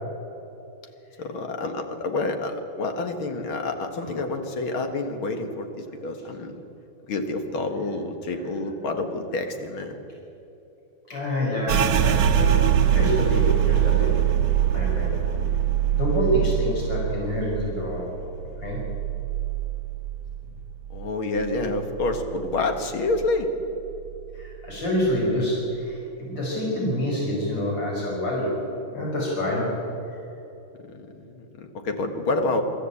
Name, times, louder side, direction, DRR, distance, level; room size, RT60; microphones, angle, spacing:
voice 1, 1.2-6.6 7.1-10.0 20.9-23.5 30.8-32.6, left 2 dB, 75° left, 5 dB, 2.5 m, -28 dB
voice 2, 11.0-14.3 14.7-15.2 15.9-18.2 18.6-18.8 24.3-28.6 28.9-29.8, left 1 dB, 60° left, -4 dB, 6.2 m, -27 dB
sound 1, 11.7-21.1 21.4-22.6 22.9-23.4 23.9-24.5, right 10 dB, 65° right, 1.3 m, -24 dB
23.5 x 13.5 x 8.5 m, 3.0 s
omnidirectional pair, 2.3 m